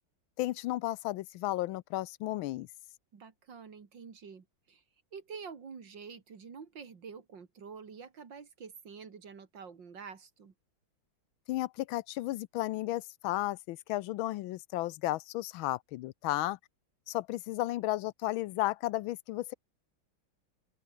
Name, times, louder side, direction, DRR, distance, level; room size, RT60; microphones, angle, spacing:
voice 1, 0.4-2.7 11.5-16.6 17.1-19.5, left 16 dB, 85° left, 1.4 m, -33 dB
voice 2, 3.1-4.8 5.1-10.5, right 6 dB, 65° right, 3.0 m, -47 dB
open air
omnidirectional pair, 2.2 m